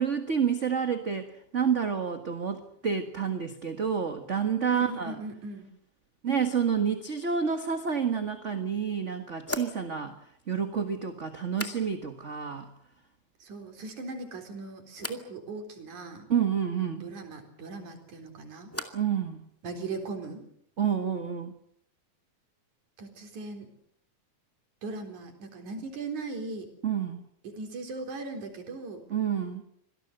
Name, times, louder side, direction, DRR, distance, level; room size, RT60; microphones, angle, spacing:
voice 1, 0.0-5.2 6.2-10.2 10.5-12.7 16.3-17.1 18.9-19.4 20.8-21.5 26.8-27.2 29.1-29.6, right 7 dB, 35° right, 7 dB, 1.4 m, -29 dB
voice 2, 4.7-5.7 13.4-16.3 17.0-18.7 19.6-20.4 23.0-23.7 24.8-26.7 27.4-29.0, right 3 dB, 85° right, 5 dB, 5.4 m, -39 dB
sound 1, 9.4-12.3 12.5-13.2 13.5-14.1 15.0-15.3 17.7-19.2 19.4-20.1, left 1 dB, 5° left, 1.6 m, -42 dB
26.0 x 18.0 x 7.9 m, 0.68 s
omnidirectional pair, 3.4 m